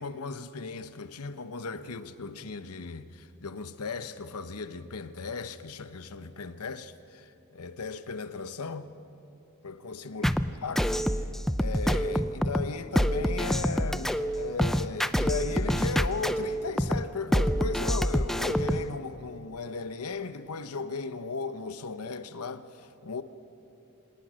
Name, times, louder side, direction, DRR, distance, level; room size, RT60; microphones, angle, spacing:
voice 1, 0.0-8.9 9.6-10.3 10.6-11.2 11.6-23.2, left 4 dB, 85° left, 0.9 m, -36 dB
sound 1, 10.2-18.9, equal, ahead, 0.4 m, -27 dB
26.5 x 18.5 x 6.4 m
head